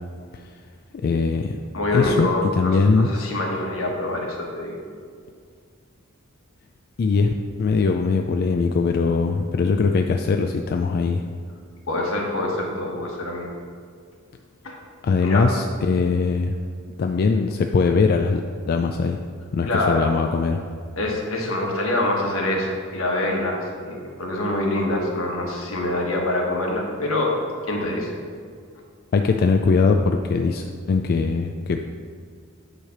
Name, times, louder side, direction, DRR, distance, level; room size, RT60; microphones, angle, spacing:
voice 1, 1.0-1.6 1.9-2.3 2.6-3.1 7.0-7.3 7.6-11.2 15.0-16.6 17.0-18.4 18.7-19.2 19.5-20.6 29.1-31.9, left 4 dB, 50° left, 5 dB, 0.3 m, -21 dB
voice 2, 1.7-4.8 11.9-13.5 14.6-14.8 15.2-15.5 19.6-20.0 21.0-27.4 27.6-28.1, left 1 dB, 80° left, -1 dB, 1.4 m, -25 dB
9.1 x 3.3 x 5.8 m, 2.1 s
head